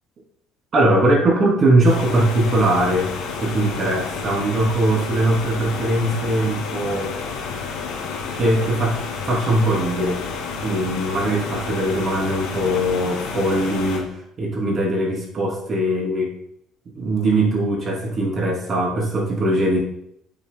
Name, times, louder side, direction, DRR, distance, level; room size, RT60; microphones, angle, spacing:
voice 1, 0.7-3.1 3.4-7.1 8.3-9.0 9.2-14.1 14.4-16.3 16.9-19.8, right 1 dB, 35° right, -2 dB, 2.9 m, -20 dB
sound 1, 1.8-14.0, left 5 dB, 80° left, 1.9 m, -30 dB
9.2 x 7.6 x 2.2 m, 0.74 s
cardioid pair, 140°, 0 cm